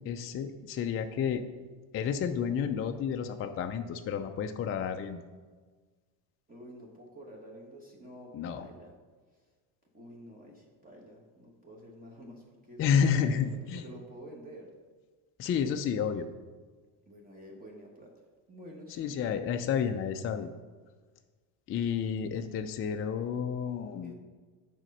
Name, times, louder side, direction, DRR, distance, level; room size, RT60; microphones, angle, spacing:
voice 1, 0.1-1.4 1.9-5.2 8.3-8.7 12.8-13.8 15.4-16.3 19.0-20.5 21.7-24.1, left 7 dB, 30° left, 6 dB, 0.4 m, -30 dB
voice 2, 6.5-8.9 9.3-9.4 9.9-14.7 17.1-18.1 18.5-20.1 24.0-24.1, equal, 20° right, -2 dB, 1.2 m, -50 dB
6.3 x 4.3 x 5.2 m, 1.4 s
supercardioid pair, 95°, 46 cm